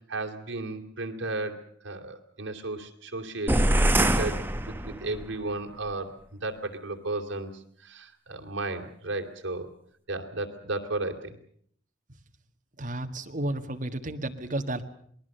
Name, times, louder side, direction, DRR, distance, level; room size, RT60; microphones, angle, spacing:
voice 1, 0.0-3.7 4.0-9.7 10.1-11.4, right 2 dB, 80° right, 4 dB, 2.9 m, -34 dB
sound 1, 3.5-5.3, right 1 dB, 10° right, 0.9 m, -24 dB
voice 2, 12.8-14.9, right 1 dB, 40° right, 5 dB, 1.6 m, -32 dB
27.0 x 20.0 x 6.8 m, 0.63 s
head